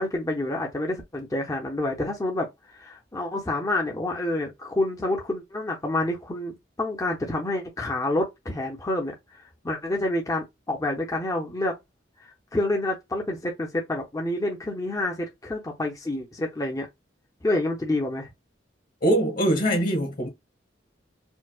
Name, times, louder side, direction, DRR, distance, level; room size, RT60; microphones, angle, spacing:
voice 1, 0.0-9.1 9.6-11.7 12.5-16.9 17.4-18.3, left 1 dB, 20° left, 0.6 m, -28 dB
voice 2, 19.0-20.3, right 1 dB, 50° left, 1.2 m, -22 dB
4.5 x 2.0 x 2.3 m
head